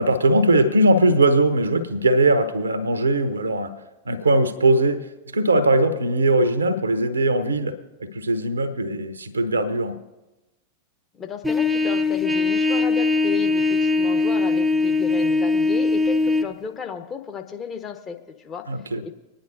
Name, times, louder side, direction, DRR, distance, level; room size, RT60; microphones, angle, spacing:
voice 1, 0.0-3.7 4.0-5.1 5.3-10.0 18.7-19.0, right 1 dB, 75° right, 0.9 m, -20 dB
voice 2, 11.1-18.6 19.0-19.1, left 6 dB, 25° left, 1.2 m, -34 dB
Trumpet, 11.4-16.5, left 3 dB, 5° right, 0.8 m, -21 dB
25.5 x 10.0 x 2.7 m
figure-of-eight pair, 90°, 0 cm